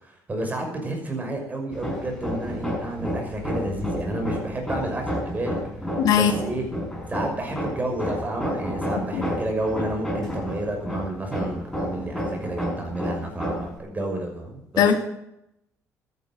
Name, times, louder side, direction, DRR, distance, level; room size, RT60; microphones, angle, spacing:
voice 1, 0.0-5.6 6.1-6.6 7.1-15.0, right 1 dB, 25° right, 2 dB, 5.9 m, -30 dB
Hammer, 1.7-13.8, equal, 5° left, 6.4 m, -31 dB
voice 2, 6.0-6.3 9.1-9.2 14.8-14.9, left 8 dB, 75° left, 6 dB, 1.8 m, -18 dB
13.0 x 11.0 x 7.8 m, 0.82 s
cardioid pair, 100°, 6 cm